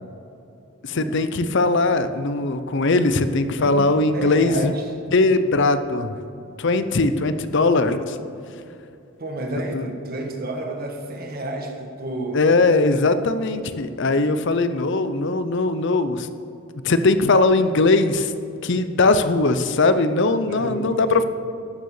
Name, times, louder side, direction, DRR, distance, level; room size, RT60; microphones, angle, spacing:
voice 1, 0.8-4.7 5.1-6.1 6.6-8.2 9.7-9.8 12.3-16.3 16.8-18.3 18.6-21.2, left 3 dB, 55° left, 11 dB, 0.6 m, -20 dB
voice 2, 3.6-4.8 9.2-12.5 20.5-21.1, right 1 dB, 40° right, 3 dB, 1.5 m, -30 dB
13.0 x 6.8 x 6.6 m, 2.7 s
head